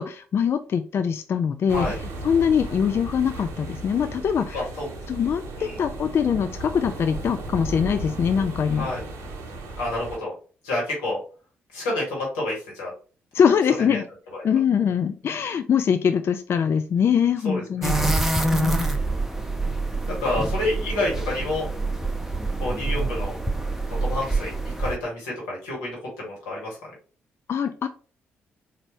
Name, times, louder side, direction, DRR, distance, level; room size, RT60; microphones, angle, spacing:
voice 1, 0.0-1.9 2.2-4.7 5.1-8.9 13.3-14.1 14.4-18.0 18.5-18.9 27.5-27.9, left 7 dB, 45° left, 9 dB, 0.4 m, -23 dB
sound 1, 1.7-10.2, right 2 dB, 60° right, 0.9 m, -35 dB
voice 2, 4.5-4.9 5.6-5.8 8.8-9.0 9.8-10.3 10.6-11.2 11.7-12.9 13.9-14.0 14.3-14.4 17.4-17.6 20.1-21.7 22.6-23.4 24.0-26.8, left 2 dB, 75° left, -4 dB, 1.6 m, -28 dB
sound 2, 17.8-25.0, right 2 dB, 5° right, 0.7 m, -26 dB
4.1 x 2.6 x 3.0 m, 0.38 s
figure-of-eight pair, 40°, 6 cm